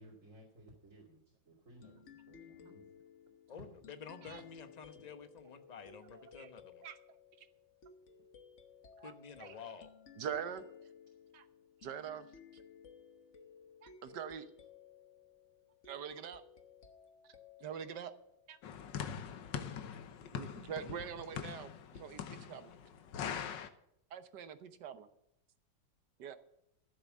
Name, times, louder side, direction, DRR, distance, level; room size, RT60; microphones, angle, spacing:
voice 1, 0.0-2.9, right 1 dB, 45° right, -3 dB, 3.3 m, -59 dB
sound 1, 1.8-19.0, left 6 dB, 45° left, 1.4 m, -58 dB
voice 2, 3.5-6.8 9.0-9.9, left 6 dB, 30° left, 9 dB, 0.9 m, -50 dB
voice 3, 6.1-6.5 6.8-7.0 7.4-7.5 9.0-9.1 9.4-9.5 10.2-10.7 11.3-11.4 11.8-12.3 12.5-12.6 13.8-14.5 15.8-16.4 17.6-18.1 18.5-18.6 20.3-22.7 24.1-25.1 26.2-26.4, right 8 dB, 70° right, 11 dB, 1.6 m, -44 dB
sound 2, 18.6-23.7, left 8 dB, 80° left, 1.7 m, -43 dB
14.0 x 7.9 x 7.2 m, 0.79 s
omnidirectional pair, 1.9 m